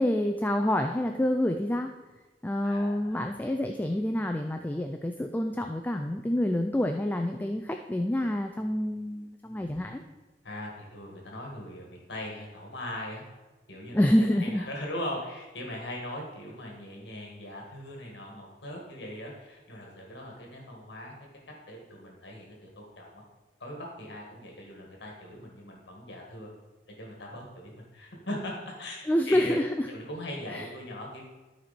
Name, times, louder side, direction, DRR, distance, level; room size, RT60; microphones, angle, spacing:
voice 1, 0.0-1.9 2.4-10.0 13.9-14.6 29.1-29.9 30.5-30.7, left 1 dB, 10° left, 5 dB, 0.4 m, -27 dB
voice 2, 2.6-3.2 10.4-13.2 13.7-21.1 21.7-23.2 23.6-26.5 27.0-29.6 29.9-31.2, left 1 dB, 65° left, -1 dB, 1.8 m, -40 dB
13.0 x 4.5 x 4.2 m, 1.2 s
head